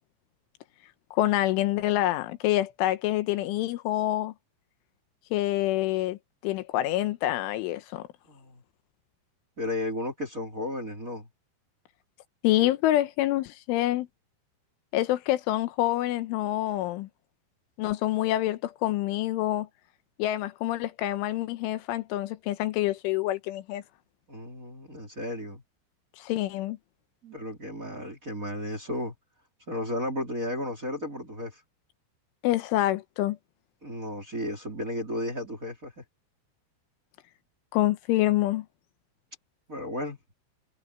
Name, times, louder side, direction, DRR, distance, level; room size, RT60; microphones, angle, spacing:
voice 1, 1.1-4.3 5.3-6.2 6.4-8.1 12.4-14.1 14.9-17.1 17.8-19.7 20.2-23.8 26.2-26.8 32.4-33.4 37.7-38.7, left 15 dB, 80° left, 3.4 m, -26 dB
voice 2, 8.2-8.6 9.6-11.3 24.3-25.6 27.2-29.1 29.7-31.6 33.8-36.0 39.7-40.2, left 1 dB, 20° right, 3.3 m, -34 dB
omnidirectional pair, 5.6 m